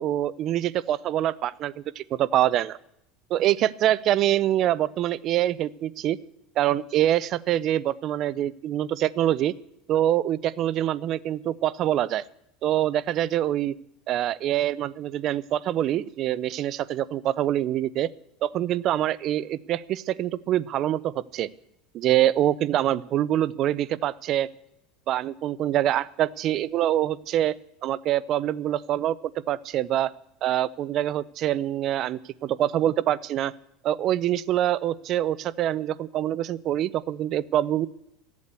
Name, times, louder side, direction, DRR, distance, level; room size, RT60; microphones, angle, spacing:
voice 1, 0.0-2.8 3.3-6.2 6.6-9.5 9.9-12.2 12.6-13.7 14.1-18.1 18.4-21.5 21.9-24.5 25.1-27.6 27.8-29.2 29.5-30.1 30.4-33.5 33.8-37.9, right 12 dB, 40° right, 19 dB, 0.5 m, -25 dB
14.5 x 8.4 x 8.2 m, 0.79 s
cardioid pair, 150°, 0 cm